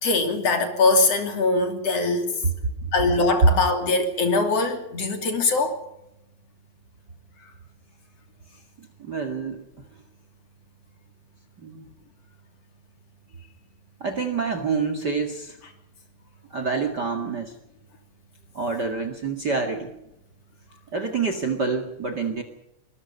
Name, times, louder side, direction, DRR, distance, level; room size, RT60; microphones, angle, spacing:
voice 1, 0.0-2.3 2.9-5.8, left 3 dB, 45° left, 5 dB, 3.7 m, -22 dB
voice 2, 8.8-9.6 11.6-11.9 14.0-15.6 16.5-17.6 18.5-19.9 20.9-22.4, right 4 dB, 35° right, 8 dB, 1.9 m, -26 dB
24.0 x 21.5 x 5.5 m, 0.85 s
omnidirectional pair, 4.2 m